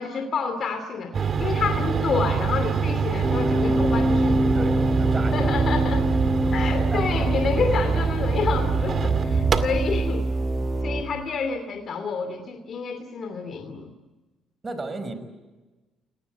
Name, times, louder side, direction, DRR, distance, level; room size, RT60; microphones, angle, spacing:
voice 1, 0.0-4.4 5.3-6.1 6.5-10.2 10.8-13.9, left 5 dB, 55° left, 7 dB, 2.7 m, -28 dB
sound 1, 1.1-10.1, right 6 dB, 45° right, 2.2 m, -25 dB
sound 2, 3.2-11.0, right 1 dB, 10° right, 5.1 m, -25 dB
voice 2, 4.5-5.5 6.9-7.0 14.6-15.1, right 2 dB, 30° right, 10 dB, 5.6 m, -33 dB
30.0 x 18.5 x 9.3 m, 1.2 s
supercardioid pair, 70°, 0 cm